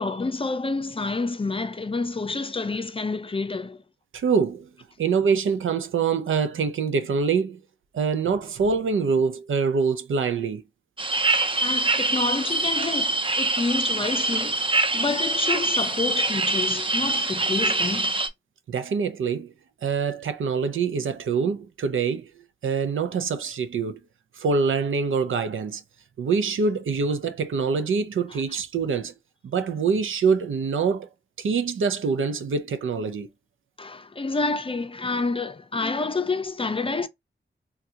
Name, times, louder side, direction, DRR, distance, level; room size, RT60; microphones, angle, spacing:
voice 1, 0.0-3.8 11.6-14.6 14.9-18.1 28.3-28.4 33.8-37.1, left 3 dB, 25° left, 0.5 m, -28 dB
voice 2, 4.1-4.7 5.0-7.6 7.9-10.6 18.7-19.5 19.8-22.3 22.6-24.0 24.4-25.8 26.2-29.1 29.4-31.1 31.4-33.3, right 5 dB, 85° right, 0.5 m, -25 dB
sound 1, 11.0-18.3, right 2 dB, 25° right, 0.5 m, -24 dB
3.6 x 2.3 x 2.8 m
wide cardioid pair, 65°, 20 cm